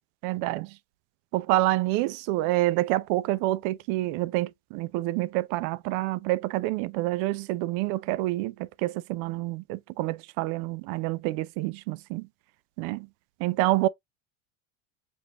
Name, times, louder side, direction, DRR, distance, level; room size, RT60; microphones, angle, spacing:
voice 1, 0.2-0.7 1.3-12.3 12.8-13.1 13.4-13.9, right 17 dB, 55° right, 0.5 m, -27 dB
5.0 x 2.6 x 2.9 m
supercardioid pair, 105°, 42 cm